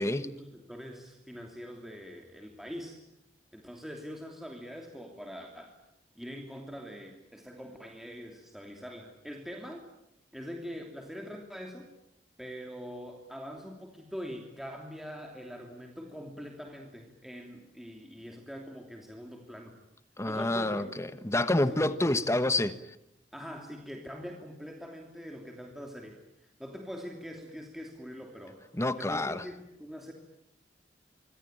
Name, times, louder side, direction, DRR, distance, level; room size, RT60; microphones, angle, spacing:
voice 1, 0.0-3.0 3.5-5.8 6.2-9.9 10.3-11.9 12.4-19.8 20.3-20.9 21.6-22.1 23.3-28.6 29.0-30.1, equal, ahead, 2 dB, 2.9 m, -43 dB
voice 2, 20.2-22.9 28.7-29.4, left 1 dB, 15° left, 12 dB, 1.2 m, -28 dB
25.5 x 25.5 x 9.0 m, 0.80 s
head